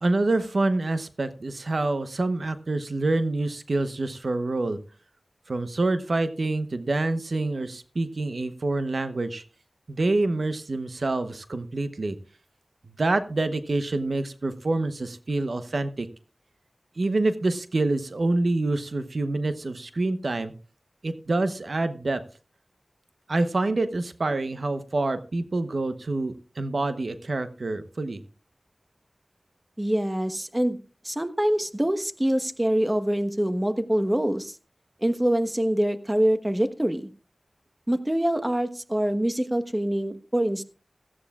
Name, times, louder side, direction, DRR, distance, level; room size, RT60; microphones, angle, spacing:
voice 1, 0.0-4.8 5.5-9.4 9.9-12.2 12.9-16.1 17.0-20.5 21.0-22.2 23.3-28.2, right 2 dB, 75° right, 11 dB, 0.9 m, -26 dB
voice 2, 29.8-30.8 31.0-34.6 35.0-37.1 37.9-40.6, right 1 dB, 20° right, 9 dB, 1.2 m, -25 dB
17.0 x 14.0 x 2.4 m, 0.35 s
wide cardioid pair, 50°, 0 cm